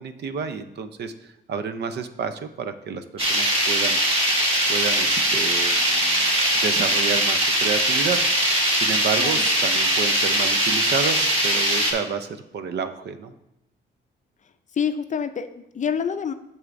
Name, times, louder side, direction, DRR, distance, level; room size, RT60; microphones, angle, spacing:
voice 1, 0.0-4.0 4.7-6.3 6.6-8.5 8.7-13.3, right 6 dB, 60° right, 10 dB, 0.6 m, -30 dB
sound 1, 3.2-11.9, right 1 dB, 30° right, 1.6 m, -21 dB
voice 2, 14.7-16.3, left 7 dB, 40° left, 9 dB, 0.5 m, -27 dB
7.8 x 7.0 x 2.6 m, 0.86 s
cardioid pair, 90°, 20 cm